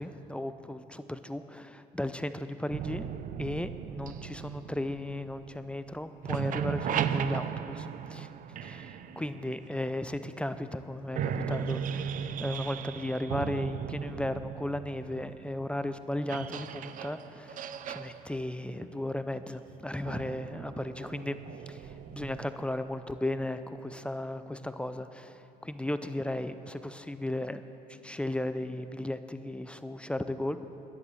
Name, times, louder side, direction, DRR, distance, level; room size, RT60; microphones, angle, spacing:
voice 1, 0.0-3.1 3.4-8.3 8.6-21.4 21.7-27.6 27.9-30.6, left 1 dB, 5° left, 11 dB, 0.5 m, -35 dB
sound 1, 2.7-5.9 6.2-10.1 10.7-10.8 11.1-22.5, right 8 dB, 55° right, 0.5 m, -37 dB
11.0 x 11.0 x 7.1 m, 2.9 s
cardioid pair, 110°, 17 cm